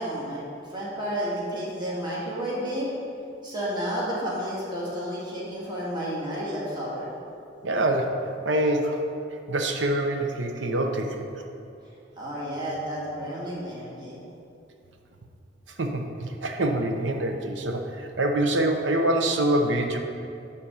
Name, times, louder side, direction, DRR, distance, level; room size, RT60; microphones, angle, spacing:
voice 1, 0.0-2.9 3.4-7.1 12.2-14.2, equal, 25° right, -7 dB, 2.0 m, -31 dB
voice 2, 7.6-9.0 9.5-11.2 15.8-20.0, right 1 dB, 85° right, 4 dB, 0.9 m, -25 dB
11.0 x 4.3 x 5.7 m, 2.6 s
head